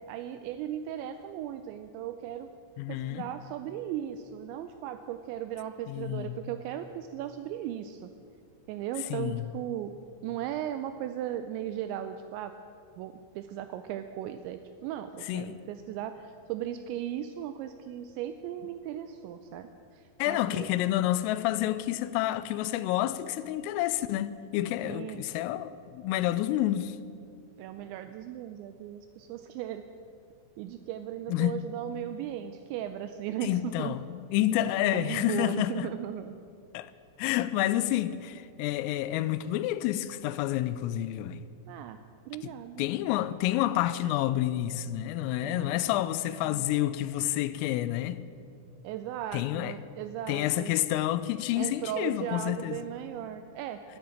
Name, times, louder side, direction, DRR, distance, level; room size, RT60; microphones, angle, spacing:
voice 1, 0.0-2.5 2.9-8.1 8.7-9.9 10.2-12.6 13.0-20.7 24.8-25.2 27.6-29.9 30.6-34.0 34.5-36.4 37.8-38.2 41.7-42.0 42.3-42.9 45.4-46.7 48.8-50.8 51.6-54.0, right 11 dB, 90° right, 2.6 m, -37 dB
voice 2, 2.8-3.2 5.9-6.4 9.1-9.4 15.3-15.6 20.2-27.0 31.3-31.6 33.4-35.9 36.7-36.9 37.2-41.4 42.4-42.5 42.8-48.2 49.3-49.8 50.3-52.8, left 14 dB, 90° left, 3.2 m, -29 dB
11.5 x 11.0 x 8.8 m
omnidirectional pair, 5.8 m